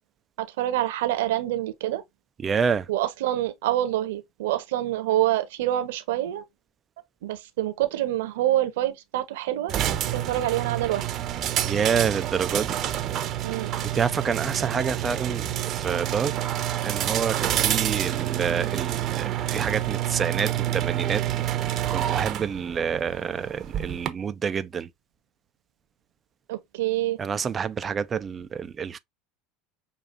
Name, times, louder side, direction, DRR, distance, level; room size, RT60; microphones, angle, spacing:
voice 1, 0.4-2.0 2.9-6.4 7.2-9.7 10.1-11.1 13.4-13.8 26.5-27.2, right 13 dB, 75° right, 1.1 m, -26 dB
voice 2, 2.4-2.9 11.6-12.8 13.8-16.6 16.8-24.9 27.2-29.0, right 6 dB, 30° right, 0.6 m, -28 dB
sound 1, 9.7-24.1, right 12 dB, 45° right, 0.9 m, -28 dB
6.8 x 2.7 x 2.6 m
hypercardioid pair, 80°, 0 cm